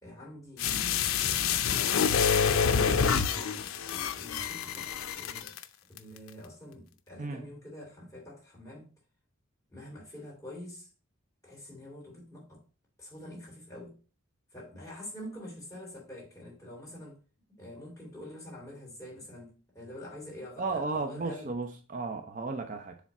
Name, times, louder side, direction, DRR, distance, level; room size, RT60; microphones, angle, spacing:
voice 1, 0.0-1.6 2.4-5.5 5.9-8.9 9.7-10.9 11.4-12.6 13.0-14.0 14.5-17.2 17.5-21.5, left 1 dB, 15° left, 2.9 m, -46 dB
sound 1, 0.6-5.6 6.0-6.1, left 7 dB, 90° left, 0.5 m, -27 dB
voice 2, 20.6-23.0, right 3 dB, 40° right, 0.6 m, -34 dB
7.2 x 3.4 x 4.2 m
head